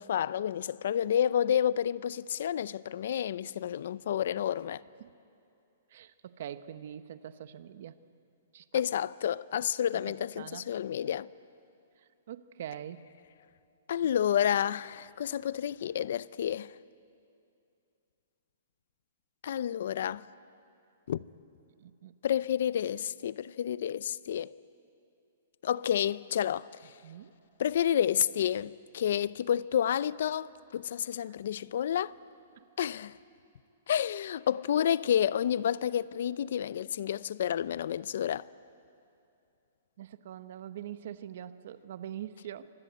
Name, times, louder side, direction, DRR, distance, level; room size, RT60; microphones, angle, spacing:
voice 1, 0.0-4.8 8.7-11.3 13.9-16.7 19.4-20.2 21.1-21.2 22.2-24.5 25.6-26.7 27.6-32.1 32.8-33.2 33.9-38.5, left 9 dB, 50° left, 0.5 m, -30 dB
voice 2, 5.9-8.0 8.5-8.8 9.9-10.0 10.4-10.6 12.3-13.0 21.8-22.1 27.0-27.3 31.3-31.4 32.6-32.7 40.0-42.7, right 10 dB, 45° right, 0.9 m, -43 dB
24.5 x 20.5 x 9.4 m
hypercardioid pair, 175°, 0 cm